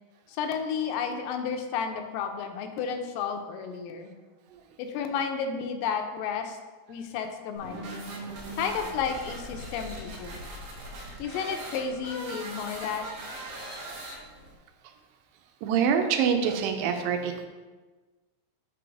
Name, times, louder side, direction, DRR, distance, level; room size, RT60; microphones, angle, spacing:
voice 1, 0.3-4.1 4.8-6.6 6.9-7.9 8.6-10.4 11.2-13.1, left 6 dB, 85° left, 6 dB, 2.3 m, -32 dB
sound 1, 7.6-14.6, right 1 dB, 65° right, 1.7 m, -40 dB
voice 2, 15.6-17.5, right 7 dB, 90° right, 6 dB, 2.4 m, -27 dB
6.0 x 3.8 x 4.8 m, 1.3 s
omnidirectional pair, 3.9 m